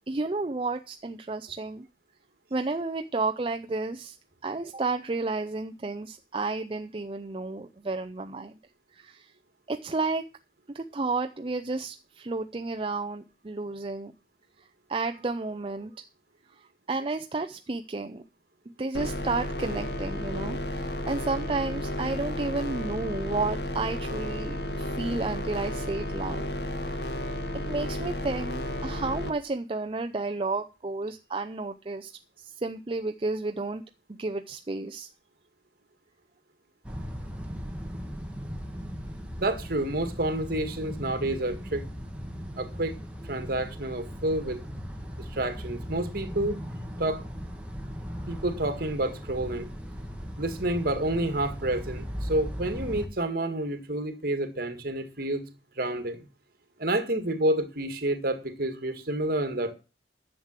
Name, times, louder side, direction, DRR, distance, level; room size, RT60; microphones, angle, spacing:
voice 1, 0.1-1.9 2.5-4.2 4.4-8.6 8.9-9.3 9.7-10.2 10.7-14.1 14.6-15.9 16.6-18.2 18.8-26.5 26.9-27.1 27.5-32.1 32.4-33.8 34.1-35.1, right 3 dB, 30° right, 0.5 m, -32 dB
sound 1, 18.9-29.3, left 1 dB, 65° left, 1.8 m, -32 dB
sound 2, 36.8-53.1, equal, 5° right, 1.7 m, -38 dB
voice 2, 39.4-41.9 42.6-43.0 43.3-44.6 45.3-46.6 47.0-47.2 48.3-49.7 50.4-55.5 55.8-56.2 56.8-59.7, right 1 dB, 55° right, 1.9 m, -29 dB
11.0 x 7.4 x 7.4 m
head